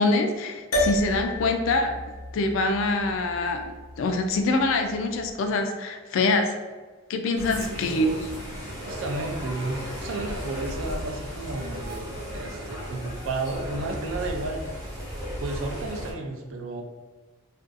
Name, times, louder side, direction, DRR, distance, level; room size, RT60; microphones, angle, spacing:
voice 1, 0.0-2.0 2.3-3.6 4.0-6.6 7.1-8.1, left 2 dB, 70° left, 5 dB, 0.3 m, -24 dB
sound 1, 0.7-5.3, left 1 dB, 85° left, 0.8 m, -32 dB
sound 2, 7.4-16.1, equal, 15° right, 0.6 m, -35 dB
voice 2, 7.6-8.2 8.7-15.0 15.4-16.8, right 2 dB, 70° right, 3 dB, 0.4 m, -33 dB
2.5 x 2.3 x 2.5 m, 1.3 s
head